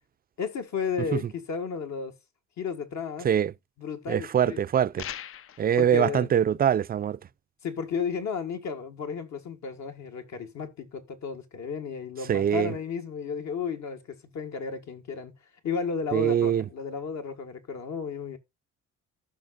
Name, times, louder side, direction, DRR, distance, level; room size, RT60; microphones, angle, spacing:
voice 1, 0.4-2.2 2.6-3.3 3.8-4.6 5.8-6.3 7.6-15.3 15.6-18.4, left 6 dB, 65° left, 1.7 m, -33 dB
voice 2, 4.1-5.1 5.6-7.2 12.3-12.7 16.1-16.6, right 9 dB, 30° right, 0.4 m, -23 dB
sound 1, 5.0-5.7, left 10 dB, 45° left, 0.4 m, -38 dB
15.0 x 5.9 x 2.4 m
cardioid pair, 90°, 30 cm